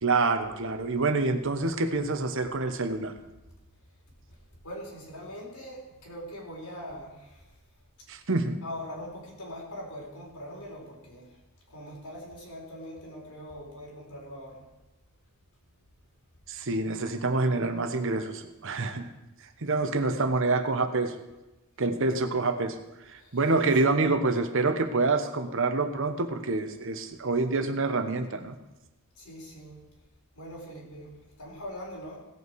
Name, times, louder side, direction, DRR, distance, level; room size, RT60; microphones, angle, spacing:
voice 1, 0.0-3.1 8.1-8.6 16.5-19.1 19.6-21.1 21.8-22.8 23.1-28.6, right 3 dB, 60° right, 8 dB, 1.0 m, -27 dB
voice 2, 4.6-7.5 8.6-11.4 11.7-14.7 23.1-23.5 23.9-24.0 29.2-29.9 30.3-32.2, equal, 90° left, -3 dB, 4.4 m, -42 dB
16.5 x 8.3 x 4.7 m, 1.0 s
head